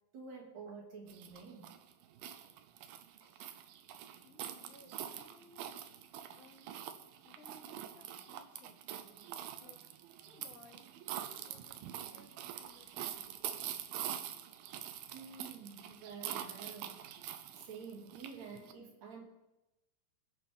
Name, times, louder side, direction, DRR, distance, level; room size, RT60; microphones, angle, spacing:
voice 1, 0.1-1.7 2.7-3.4 10.2-10.3 15.1-17.1 17.5-19.2, right 5 dB, 55° right, -1 dB, 3.3 m, -50 dB
sound 1, 1.1-18.7, right 10 dB, 90° right, 2.6 m, -45 dB
voice 2, 4.2-6.0 6.3-6.8 7.2-8.8 9.6-9.9 10.2-10.9 11.2-13.7, left 3 dB, 50° left, 0 dB, 2.9 m, -62 dB
25.5 x 8.8 x 3.5 m, 0.97 s
omnidirectional pair, 4.1 m